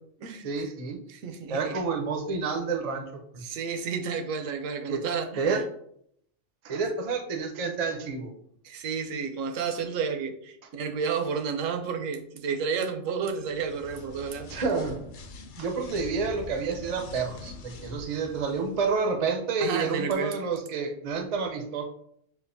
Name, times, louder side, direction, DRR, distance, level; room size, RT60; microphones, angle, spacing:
voice 1, 0.4-1.0 1.5-3.4 4.9-5.0 5.4-5.6 6.6-8.3 14.5-15.0 15.6-21.8, right 4 dB, 45° right, 4 dB, 0.5 m, -29 dB
voice 2, 1.1-1.8 3.4-5.6 8.6-14.5 19.6-20.3, right 6 dB, 80° right, 6 dB, 1.0 m, -31 dB
sound 1, 13.4-19.1, left 3 dB, 60° left, 0.5 m, -44 dB
6.6 x 2.4 x 2.6 m, 0.69 s
omnidirectional pair, 1.4 m